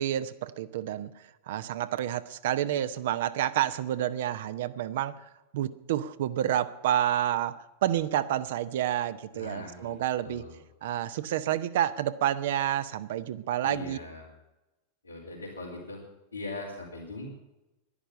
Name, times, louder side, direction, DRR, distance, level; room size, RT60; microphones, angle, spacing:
voice 1, 0.0-10.4 10.8-14.0, right 11 dB, 55° right, 13 dB, 0.7 m, -29 dB
voice 2, 9.3-10.6 13.6-14.3 15.0-16.0 16.3-17.3, left 2 dB, 80° left, -8 dB, 3.9 m, -40 dB
11.5 x 11.0 x 9.9 m, 0.99 s
figure-of-eight pair, 90°, 0 cm